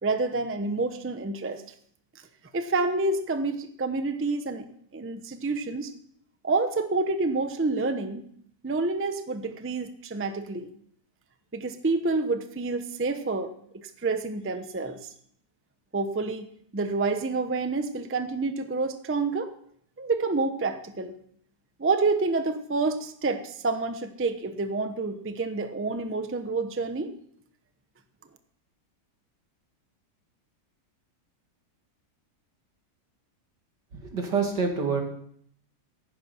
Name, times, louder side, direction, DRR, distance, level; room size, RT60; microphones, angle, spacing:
voice 1, 0.0-1.6 2.5-4.6 4.9-5.9 6.4-8.2 8.6-10.7 11.5-15.1 15.9-19.5 20.0-21.2 21.8-27.1, right 3 dB, 15° right, 8 dB, 0.6 m, -28 dB
voice 2, 34.0-35.0, right 5 dB, 80° right, 2 dB, 3.0 m, -26 dB
15.0 x 11.5 x 4.5 m, 0.65 s
omnidirectional pair, 1.8 m